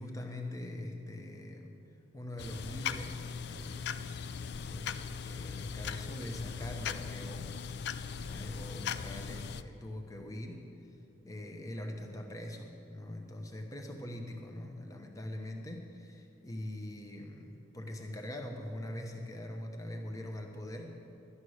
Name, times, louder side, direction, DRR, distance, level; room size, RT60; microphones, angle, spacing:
voice 1, 0.0-1.8 2.1-4.2 4.7-7.5 7.8-8.0 8.3-10.7 11.2-21.0, left 1 dB, 15° left, 3 dB, 1.0 m, -43 dB
sound 1, 2.4-9.6, left 6 dB, 55° left, 0.4 m, -39 dB
11.5 x 11.0 x 6.4 m, 2.6 s
head